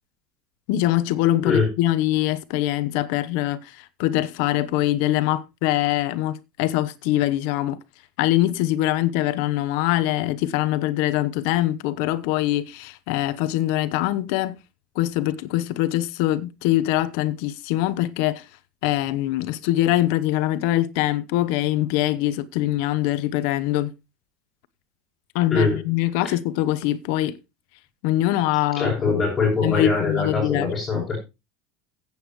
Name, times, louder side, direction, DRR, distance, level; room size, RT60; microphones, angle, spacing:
voice 1, 0.7-7.8 8.2-14.6 14.9-18.5 18.8-23.9 25.3-27.4 28.0-29.2 29.6-31.0, left 15 dB, 60° left, 0.9 m, -23 dB
voice 2, 25.5-25.8 26.2-26.3 28.8-31.2, left 4 dB, 20° left, 7.1 m, -22 dB
15.0 x 8.3 x 3.1 m
cardioid pair, 170°, 0 cm